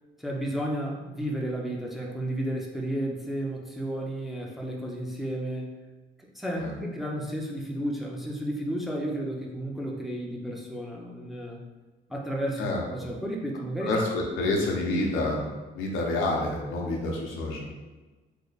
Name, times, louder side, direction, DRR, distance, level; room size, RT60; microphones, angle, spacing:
voice 1, 0.2-5.7 6.2-11.6 12.1-13.9 14.4-14.5, right 1 dB, ahead, -2 dB, 0.6 m, -32 dB
voice 2, 12.6-13.1 13.8-15.5 15.7-17.7, left 2 dB, 90° left, -1 dB, 0.8 m, -28 dB
3.3 x 2.2 x 3.9 m, 1.2 s
cardioid pair, 90°, 20 cm